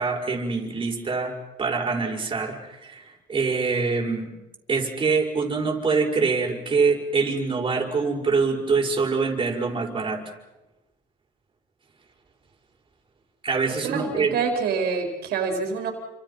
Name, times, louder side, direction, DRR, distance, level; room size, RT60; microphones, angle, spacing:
voice 1, 0.0-1.3 1.6-4.3 4.7-10.2 13.4-14.4, right 4 dB, 30° right, 0 dB, 6.0 m, -24 dB
voice 2, 13.8-15.9, right 5 dB, 70° right, 3 dB, 4.6 m, -26 dB
29.5 x 27.0 x 5.9 m, 1.0 s
cardioid pair, 110°, 17 cm